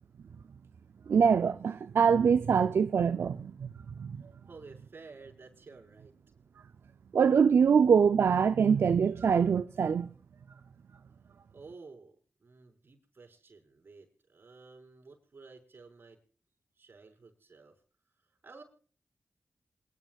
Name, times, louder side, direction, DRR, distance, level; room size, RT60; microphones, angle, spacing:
voice 1, 1.1-3.7 4.0-4.2 7.1-10.1, right 6 dB, 80° right, 0.5 m, -24 dB
voice 2, 4.5-6.1 11.5-16.2 16.8-17.8 18.4-18.6, right 4 dB, 60° right, 5.3 m, -52 dB
27.0 x 10.5 x 2.4 m
cardioid pair, 50°, 4 cm